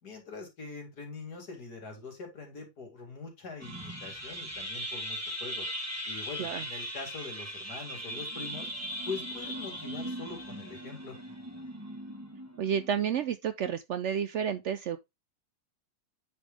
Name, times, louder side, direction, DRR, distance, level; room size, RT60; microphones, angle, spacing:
voice 1, 0.0-5.7 6.0-8.7 9.1-11.2, left 4 dB, 90° left, 2.8 m, -43 dB
sound 1, 3.6-13.3, equal, 10° right, 1.0 m, -39 dB
voice 2, 12.6-15.0, right 8 dB, 65° right, 0.7 m, -30 dB
8.9 x 3.8 x 3.3 m
omnidirectional pair, 1.6 m